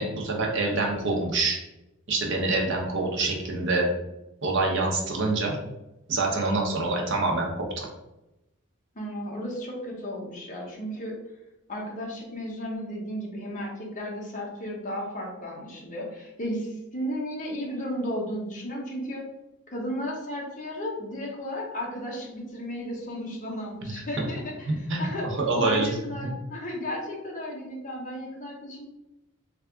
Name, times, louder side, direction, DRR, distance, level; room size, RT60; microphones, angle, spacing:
voice 1, 0.0-1.6 2.1-3.9 4.4-5.6 6.1-7.9 23.8-23.9 24.7-25.9, right 3 dB, 55° right, 0 dB, 0.8 m, -26 dB
voice 2, 8.9-11.2 11.7-19.3 19.7-28.8, equal, 35° left, -2 dB, 0.8 m, -34 dB
3.4 x 2.4 x 3.4 m, 0.94 s
head